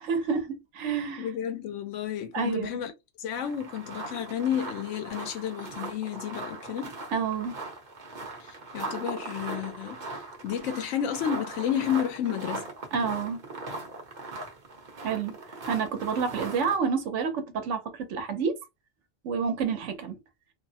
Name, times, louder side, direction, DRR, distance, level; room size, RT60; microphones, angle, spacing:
voice 1, 0.0-1.3 2.3-2.8 7.1-7.6 12.9-13.4 15.0-15.4 15.7-18.6 19.2-20.2, right 5 dB, 85° right, 1.0 m, -29 dB
voice 2, 1.2-2.9 3.2-7.0 8.4-12.7, left 9 dB, 90° left, 0.9 m, -31 dB
sound 1, 3.4-16.8, right 2 dB, 45° right, 0.9 m, -39 dB
3.1 x 2.0 x 2.7 m
omnidirectional pair, 1.2 m